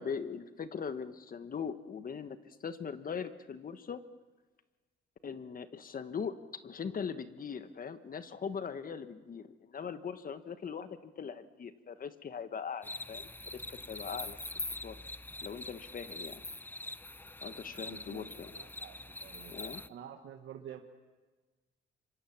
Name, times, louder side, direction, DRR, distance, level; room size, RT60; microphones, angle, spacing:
voice 1, 0.0-4.0 5.2-6.4 6.6-14.4 14.8-14.9 15.4-16.4 17.4-18.5 19.5-19.8, left 6 dB, 45° left, 11 dB, 1.4 m, -40 dB
sound 1, 12.8-19.9, left 2 dB, 10° left, 0.7 m, -44 dB
voice 2, 17.8-19.5 19.9-20.8, right 9 dB, 75° right, 4 dB, 1.5 m, -49 dB
26.5 x 24.5 x 7.3 m, 1.3 s
cardioid pair, 90°, 20 cm